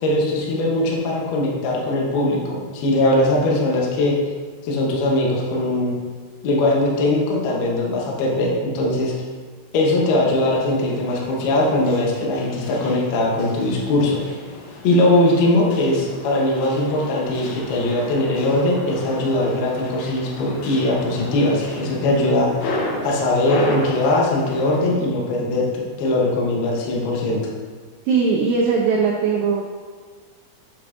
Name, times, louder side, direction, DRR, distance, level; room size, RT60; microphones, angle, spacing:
voice 1, 0.0-4.2 4.6-6.0 6.4-9.1 9.7-14.2 14.8-22.5 23.0-27.4, left 1 dB, 70° left, -3 dB, 2.8 m, -20 dB
sound 1, 10.3-24.9, left 2 dB, 90° left, 3.6 m, -33 dB
voice 2, 28.1-29.6, right 5 dB, 90° right, -1 dB, 2.0 m, -19 dB
8.6 x 6.9 x 2.6 m, 1.5 s
omnidirectional pair, 5.0 m